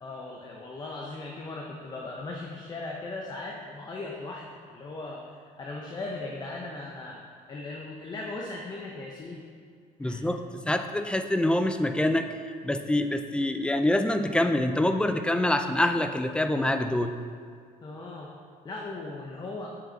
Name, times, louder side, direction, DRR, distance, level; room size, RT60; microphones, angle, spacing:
voice 1, 0.0-7.2 7.5-9.4 10.0-10.2 17.8-18.3 18.6-19.7, left 2 dB, 25° left, -1 dB, 0.8 m, -38 dB
voice 2, 10.0-17.1, left 1 dB, 5° left, 8 dB, 0.4 m, -26 dB
7.7 x 7.6 x 4.0 m, 2.2 s
cardioid pair, 135°, 16 cm